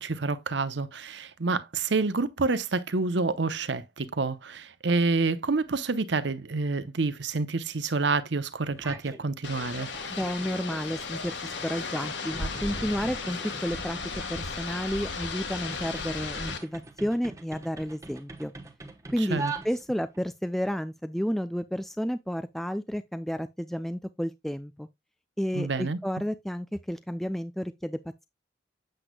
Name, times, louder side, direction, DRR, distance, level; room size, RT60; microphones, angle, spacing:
voice 1, 0.0-9.9 19.2-19.5 25.5-26.0, right 3 dB, 65° right, 0.8 m, -28 dB
sound 1, 8.7-9.2 9.6-20.2, right 3 dB, 15° right, 1.0 m, -43 dB
sound 2, 9.4-16.6, left 4 dB, 70° left, 1.7 m, -35 dB
voice 2, 10.1-14.0 14.3-18.5 19.1-24.9 25.4-28.0, equal, ahead, 0.3 m, -31 dB
8.1 x 7.7 x 2.3 m
head